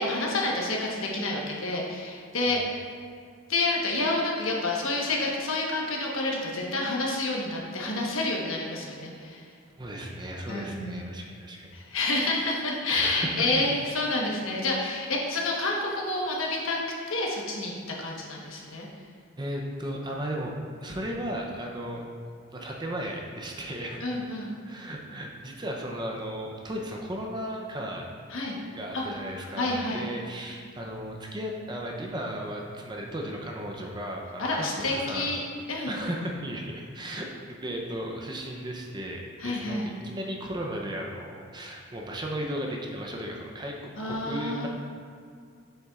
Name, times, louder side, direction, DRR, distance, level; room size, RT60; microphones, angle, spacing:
voice 1, 0.0-2.8 3.5-9.4 10.5-11.0 11.7-16.8 17.1-17.7 18.0-18.9 24.0-24.6 28.3-28.6 28.9-29.0 29.6-30.1 34.4-35.4 35.7-36.0 39.4-39.9 44.0-44.7, left 2 dB, 70° left, -2 dB, 1.2 m, -29 dB
voice 2, 9.8-11.7 12.9-13.6 19.4-20.5 20.8-22.1 22.5-24.2 24.6-28.1 28.8-35.3 35.9-44.7, equal, 20° right, 0 dB, 0.6 m, -35 dB
7.9 x 6.8 x 2.4 m, 2.2 s
head